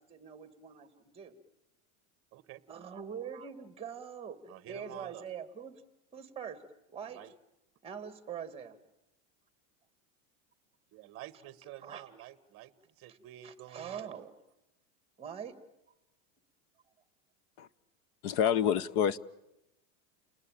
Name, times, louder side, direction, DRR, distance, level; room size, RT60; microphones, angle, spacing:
voice 1, 0.0-1.3 2.7-4.4 4.7-5.8 6.1-6.6 6.9-7.2 7.8-8.8 11.8-12.0 13.1-13.2 13.4-14.3 15.2-15.6, right 7 dB, 15° right, 2.0 m, -43 dB
voice 2, 4.5-5.3 7.1-7.3 10.9-14.2, right 12 dB, 30° right, 1.2 m, -49 dB
voice 3, 18.2-19.2, left 9 dB, 40° left, 0.9 m, -27 dB
29.5 x 20.0 x 9.0 m
supercardioid pair, 160°, 44 cm